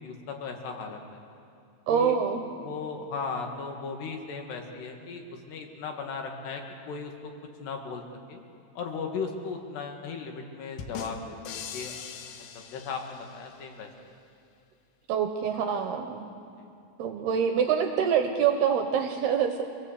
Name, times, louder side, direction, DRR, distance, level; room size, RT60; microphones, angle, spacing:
voice 1, 0.0-1.2 1.9-2.2 2.6-7.3 7.6-8.0 8.3-8.4 8.8-12.0 12.4-12.5 12.7-14.1 16.6-16.7, left 5 dB, 65° left, 3 dB, 3.7 m, -37 dB
voice 2, 1.9-2.4 15.1-16.2 17.0-19.6, right 7 dB, 70° right, 5 dB, 2.7 m, -25 dB
sound 1, 10.8-13.6, left 7 dB, 85° left, 4.0 m, -41 dB
27.0 x 18.5 x 8.0 m, 2.5 s
omnidirectional pair, 5.5 m